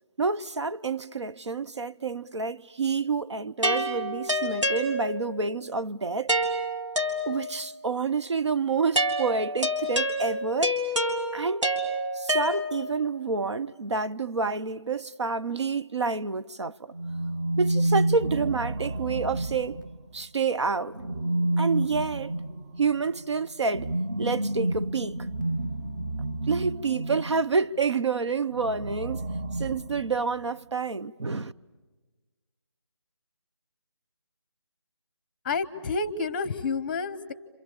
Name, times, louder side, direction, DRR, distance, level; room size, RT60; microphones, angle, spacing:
voice 1, 0.2-6.3 7.3-10.8 11.3-11.7 12.1-16.9 17.6-19.8 20.1-21.0 21.6-22.3 22.8-23.9 24.2-25.3 26.5-31.5, right 4 dB, 70° right, 0.8 m, -28 dB
sound 1, 3.6-5.4 6.3-7.7 8.9-13.1, equal, 90° right, 3.5 m, -28 dB
sound 2, 16.9-20.2 20.9-27.5 28.5-30.4, right 1 dB, 40° right, 1.0 m, -30 dB
voice 2, 35.4-37.3, left 4 dB, 20° left, 0.8 m, -29 dB
30.0 x 27.0 x 7.1 m
figure-of-eight pair, 165°, 15 cm